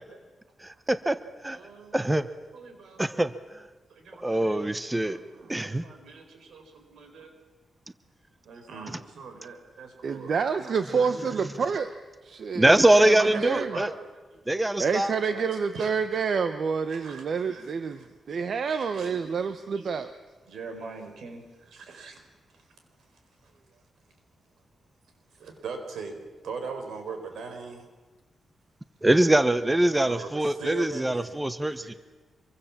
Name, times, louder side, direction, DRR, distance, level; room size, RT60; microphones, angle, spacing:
voice 1, 0.6-1.2 1.4-1.6 1.9-2.3 3.0-3.6 4.2-5.2 5.5-5.8 12.5-13.9 14.5-15.1 29.0-31.9, right 1 dB, 10° right, 12 dB, 0.9 m, -23 dB
voice 2, 1.5-2.0 2.5-3.0 3.9-5.2 5.5-7.3 8.4-10.3 10.6-11.4 12.6-13.9 14.3-14.4 14.7-14.8 15.2-15.4 15.7-15.9 16.9-18.1 18.7-20.0 20.5-22.3 22.5-22.7 25.4-26.2 26.4-27.9 29.9-32.0, right 4 dB, 90° right, 5 dB, 4.7 m, -41 dB
voice 3, 10.0-11.9 12.2-13.8 14.8-20.1, right 5 dB, 60° right, 9 dB, 1.1 m, -28 dB
26.0 x 23.5 x 7.4 m, 1.3 s
wide cardioid pair, 125°, 0 cm